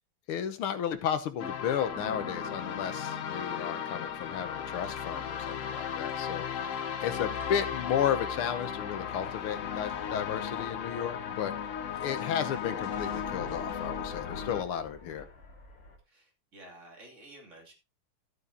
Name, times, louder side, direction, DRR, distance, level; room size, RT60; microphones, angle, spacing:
voice 1, 0.3-6.5 7.0-11.5 12.0-15.3, left 8 dB, 85° left, 9 dB, 1.9 m, -33 dB
sound 1, 1.4-14.6, left 8 dB, 65° left, 0.7 m, -36 dB
sound 2, 1.9-6.9, equal, 15° right, 2.2 m, -51 dB
sound 3, 4.2-11.0 12.0-16.0, left 1 dB, 45° left, 2.7 m, -50 dB
voice 2, 6.5-7.5 15.0-15.2 16.0-17.7, right 1 dB, 35° right, 0 dB, 2.9 m, -53 dB
12.5 x 8.7 x 2.7 m, 0.28 s
omnidirectional pair, 2.3 m